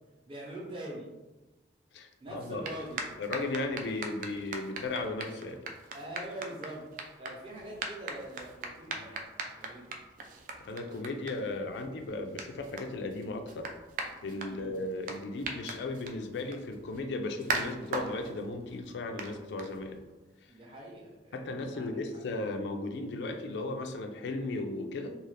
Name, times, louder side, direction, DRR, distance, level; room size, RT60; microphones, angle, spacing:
voice 1, 0.3-1.1 2.2-3.1 5.9-6.8 7.2-10.0 14.5-14.8 20.5-22.2, right 1 dB, 30° right, -4 dB, 0.7 m, -44 dB
voice 2, 1.9-2.6 3.2-5.6 8.9-9.0 10.6-13.7 14.2-20.0 21.3-25.2, left 2 dB, 75° left, 5 dB, 0.3 m, -36 dB
sound 1, 2.4-20.2, right 3 dB, 50° right, 0.3 m, -41 dB
2.5 x 2.3 x 3.2 m, 1.1 s
head